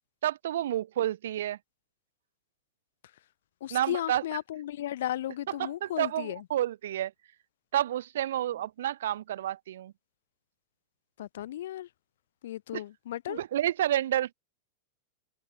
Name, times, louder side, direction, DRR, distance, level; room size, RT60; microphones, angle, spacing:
voice 1, 0.2-1.6 3.7-4.2 5.5-7.1 7.7-9.9 12.7-12.8 13.3-14.3, right 12 dB, 60° right, 0.3 m, -30 dB
voice 2, 3.6-6.4 11.2-11.9 12.4-13.4, left 13 dB, 60° left, 0.4 m, -35 dB
figure-of-eight pair, 90°, 0 cm